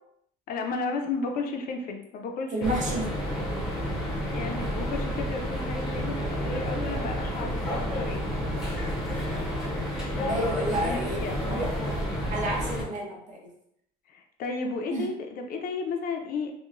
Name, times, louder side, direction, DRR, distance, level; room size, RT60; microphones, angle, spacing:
voice 1, 0.5-3.0 4.3-8.3 10.1-10.4 10.8-11.4 14.1-16.5, left 4 dB, 50° left, 4 dB, 0.4 m, -33 dB
voice 2, 2.5-3.0 10.3-11.2 11.5-13.5 14.9-15.1, right 1 dB, 40° right, -1 dB, 0.7 m, -30 dB
sound 1, 2.6-12.8, equal, ahead, 0.6 m, -30 dB
2.9 x 2.1 x 2.4 m, 0.74 s
cardioid pair, 125°, 19 cm